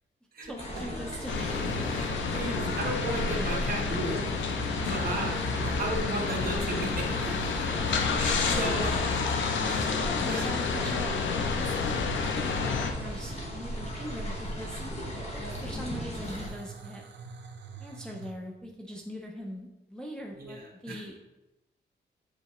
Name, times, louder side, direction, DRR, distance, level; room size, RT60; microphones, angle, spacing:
voice 1, 0.4-1.7 8.6-8.9 9.6-14.8 15.3-17.0 17.8-21.2, equal, 5° left, -1 dB, 0.5 m, -41 dB
sound 1, 0.6-16.5, equal, 35° left, 1.3 m, -36 dB
sound 2, 1.3-12.9, left 5 dB, 80° left, 0.6 m, -30 dB
sound 3, 1.3-18.3, right 4 dB, 70° right, 0.6 m, -45 dB
voice 2, 1.9-4.3 4.8-5.4 5.6-7.7 8.2-9.0 9.6-9.9 10.3-10.5 20.4-21.0, right 2 dB, 50° right, 0 dB, 1.2 m, -34 dB
7.9 x 4.0 x 3.0 m, 0.99 s
wide cardioid pair, 165°, 19 cm